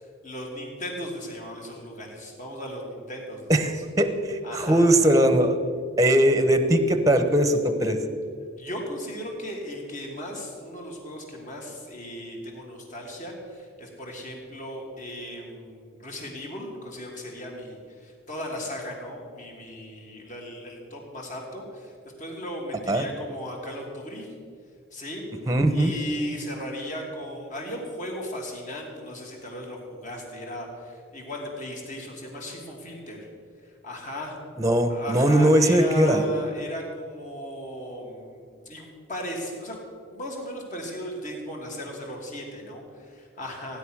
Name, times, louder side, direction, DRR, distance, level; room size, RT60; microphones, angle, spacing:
voice 1, 0.2-3.8 4.4-4.9 8.6-21.9 22.2-24.3 24.9-25.2 25.7-33.3 33.6-34.4 34.9-39.8 40.1-43.8, equal, 40° left, 0 dB, 2.9 m, -36 dB
voice 2, 3.5-5.6 6.0-8.0 22.9-23.0 25.5-25.9 34.6-36.2, right 1 dB, 15° right, 9 dB, 1.0 m, -20 dB
16.0 x 10.5 x 6.4 m, 2.3 s
head